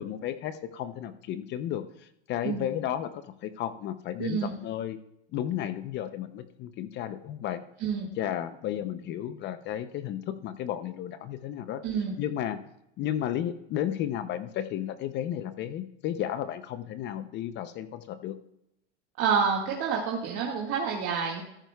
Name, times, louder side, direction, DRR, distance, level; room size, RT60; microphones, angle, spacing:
voice 1, 0.0-5.0 5.3-7.6 8.2-11.8 12.2-12.6 13.0-18.4, left 11 dB, 35° left, 12 dB, 0.5 m, -33 dB
voice 2, 4.2-4.5 7.8-8.1 11.8-12.2 19.2-21.4, right 6 dB, 45° right, -2 dB, 1.8 m, -28 dB
13.5 x 10.0 x 2.3 m, 0.81 s
supercardioid pair, 135°, 33 cm